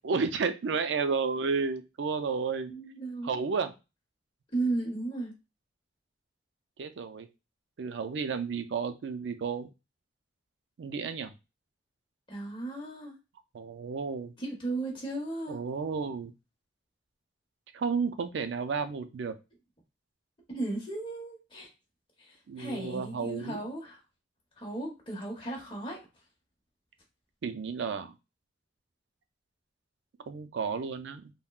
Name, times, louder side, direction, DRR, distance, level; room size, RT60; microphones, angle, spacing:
voice 1, 0.0-2.7 3.2-3.8 6.8-7.3 7.8-9.7 10.8-11.3 13.5-14.3 15.5-16.3 17.7-19.3 22.5-23.6 27.4-28.1 30.3-31.3, right 5 dB, 75° right, 10 dB, 0.4 m, -32 dB
voice 2, 2.7-3.4 4.5-5.3 12.3-13.1 14.4-15.6 20.5-21.7 22.2-24.0 24.6-26.0, right 2 dB, 25° left, -1 dB, 1.0 m, -35 dB
3.5 x 2.1 x 2.3 m, 0.27 s
head